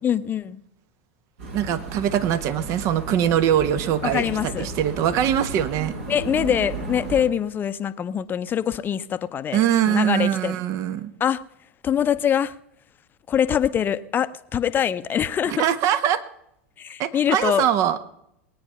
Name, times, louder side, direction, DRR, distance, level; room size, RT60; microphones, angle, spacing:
voice 1, 0.0-0.6 4.0-4.7 6.1-10.6 11.2-11.4 11.8-12.6 13.3-15.6 16.8-17.7, left 9 dB, 30° left, 13 dB, 0.8 m, -24 dB
sound 1, 1.4-7.2, right 3 dB, 65° right, 4.6 m, -34 dB
voice 2, 1.5-5.9 9.5-11.1 15.6-16.2 17.0-18.0, right 10 dB, 45° right, 12 dB, 1.3 m, -22 dB
20.5 x 9.6 x 5.7 m, 0.77 s
hypercardioid pair, 90°, 7 cm